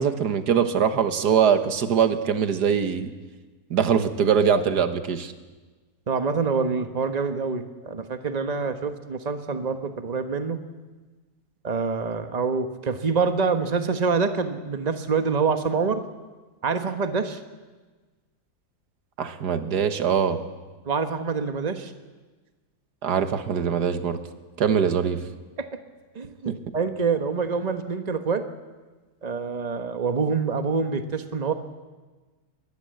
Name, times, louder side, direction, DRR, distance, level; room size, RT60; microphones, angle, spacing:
voice 1, 0.0-3.1 3.7-5.3 19.2-20.4 23.0-24.2 24.6-25.2 26.5-26.6, right 7 dB, 90° right, 9 dB, 1.9 m, -22 dB
voice 2, 6.1-10.6 11.6-16.0 16.6-17.4 20.8-21.9 25.6-25.7 26.1-28.4 29.2-31.5, right 5 dB, 25° right, 8 dB, 1.3 m, -26 dB
23.0 x 20.0 x 7.9 m, 1.3 s
omnidirectional pair, 1.7 m